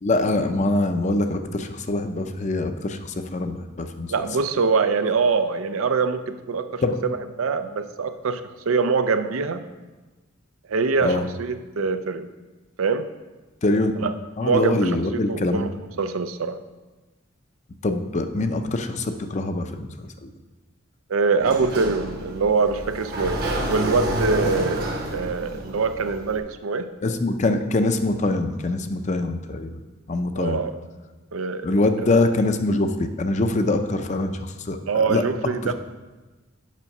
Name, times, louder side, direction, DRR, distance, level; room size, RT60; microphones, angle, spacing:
voice 1, 0.0-4.1 6.8-7.0 11.0-11.3 13.6-15.7 17.8-20.3 24.4-24.6 27.0-29.7 30.1-30.6 31.6-35.2 35.6-35.7, left 2 dB, 35° left, 8 dB, 0.5 m, -24 dB
voice 2, 4.1-6.8 7.4-8.4 8.7-9.7 10.7-12.3 12.8-13.1 14.0-14.1 14.4-14.9 15.3-15.7 16.0-16.6 21.1-26.9 30.4-30.7 31.3-31.7 34.9-35.7, right 4 dB, 85° right, 10 dB, 0.5 m, -24 dB
Sliding door, 21.4-26.4, right 1 dB, 50° right, 1.0 m, -29 dB
7.4 x 5.6 x 5.3 m, 1.2 s
head